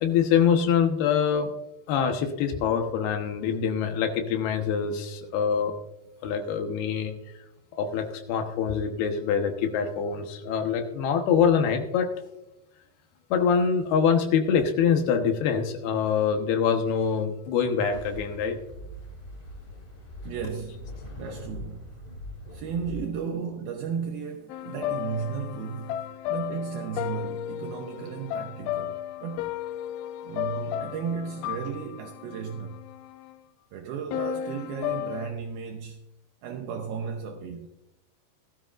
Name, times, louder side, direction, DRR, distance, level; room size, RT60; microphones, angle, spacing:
voice 1, 0.0-1.5 1.9-5.7 6.2-7.1 7.8-12.1 13.3-18.6, left 7 dB, 70° left, 3.0 m, -24 dB
sound 1, 17.9-23.1, left 1 dB, 20° left, 1.4 m, -42 dB
voice 2, 20.2-20.8 21.2-21.9 22.5-25.9 26.3-29.5 30.2-32.8 33.7-36.0 36.4-37.7, right 7 dB, 75° right, 2.3 m, -34 dB
sound 2, 24.5-33.3 34.1-35.3, left 12 dB, 85° left, 2.2 m, -34 dB
17.5 x 12.5 x 2.5 m
omnidirectional pair, 5.0 m